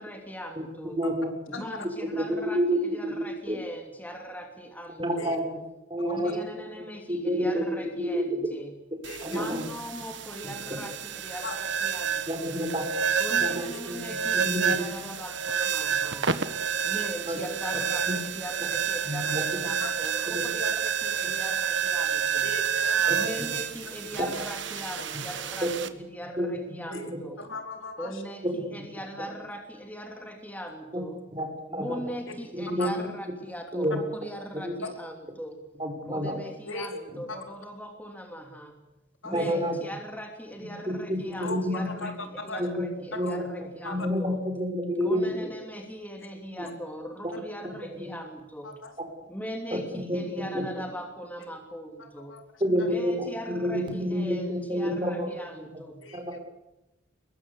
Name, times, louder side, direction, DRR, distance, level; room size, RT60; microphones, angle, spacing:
voice 1, 0.0-1.0 1.5-5.3 6.0-8.7 9.2-12.5 13.2-16.4 16.8-22.6 23.1-27.4 28.0-31.2 31.7-35.6 36.1-38.8 39.2-44.4 45.0-48.8 49.3-52.4 52.8-56.0, equal, 10° left, 4 dB, 2.8 m, -40 dB
voice 2, 0.9-1.3 2.1-3.6 5.0-5.4 5.9-6.3 6.8-8.4 8.9-9.7 12.3-12.8 13.4-14.0 14.4-14.7 17.3-17.4 18.1-18.2 19.1-19.4 20.3-20.4 23.1-23.5 24.2-24.3 25.6-25.7 26.4-26.7 27.1-27.2 30.9-31.0 31.3-31.5 31.7-32.0 32.5-32.9 33.7-34.0 34.6-34.7 35.8-36.4 39.3-39.8 40.9-41.9 42.6-42.8 43.2-43.5 43.8-45.5 46.6-46.7 47.2-47.3 48.0-48.1 49.0-49.1 49.7-50.6 52.6-53.3 53.6-55.3 56.1-56.4, equal, 25° right, 5 dB, 5.2 m, -29 dB
voice 3, 9.0-9.4 11.4-11.6 19.8-19.9 22.4-23.3 26.9-27.1 27.4-28.1 32.8-32.9 36.7-36.9 37.3-37.4 39.2-39.3 41.4-42.6 43.1-43.4 43.8-44.0 48.6-48.9 52.3-52.4 56.0-56.2, left 3 dB, 80° left, 5 dB, 4.3 m, -37 dB
sound 1, 9.0-25.9, right 7 dB, 65° right, 1.6 m, -29 dB
24.5 x 21.5 x 8.5 m, 0.93 s
head